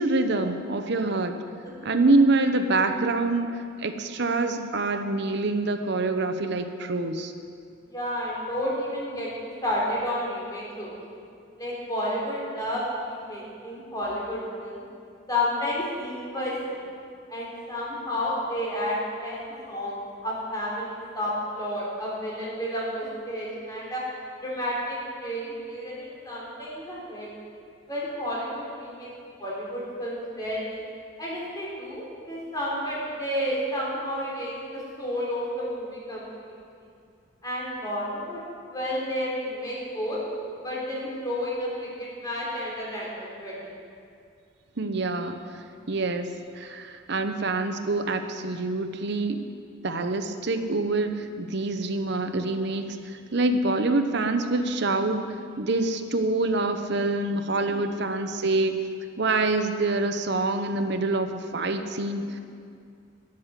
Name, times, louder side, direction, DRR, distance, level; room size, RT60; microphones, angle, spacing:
voice 1, 0.0-1.4 1.8-3.5 3.8-7.3 44.8-45.4 45.9-46.3 46.6-49.4 49.8-55.3 55.6-58.8 59.2-62.4, right 2 dB, 60° right, 7 dB, 0.8 m, -26 dB
voice 2, 1.6-2.0 7.9-11.2 11.6-14.8 15.3-16.8 17.3-24.0 24.4-27.3 27.9-29.1 29.4-30.8 31.2-36.3 37.4-38.4 38.7-40.2 40.6-43.7 57.6-57.7, equal, 20° left, -6 dB, 3.4 m, -31 dB
10.5 x 9.0 x 6.8 m, 2.3 s
head